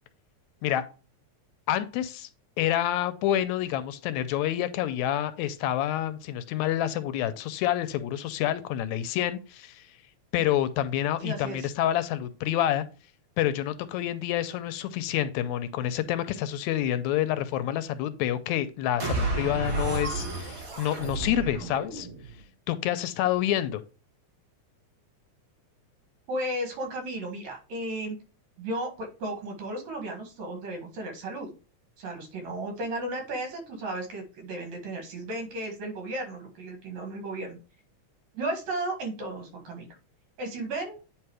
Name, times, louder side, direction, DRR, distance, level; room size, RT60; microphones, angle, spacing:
voice 1, 1.7-2.3 2.6-9.8 10.3-12.9 13.4-22.1 22.7-23.8, left 12 dB, 80° left, 1.9 m, -28 dB
voice 2, 11.2-11.7 26.3-28.2 28.6-31.5 32.0-37.6 38.3-39.9 40.4-41.0, right 1 dB, 75° right, 3.0 m, -34 dB
sound 1, 19.0-22.4, right 3 dB, 45° right, 2.7 m, -31 dB
9.0 x 3.0 x 4.7 m
omnidirectional pair, 3.3 m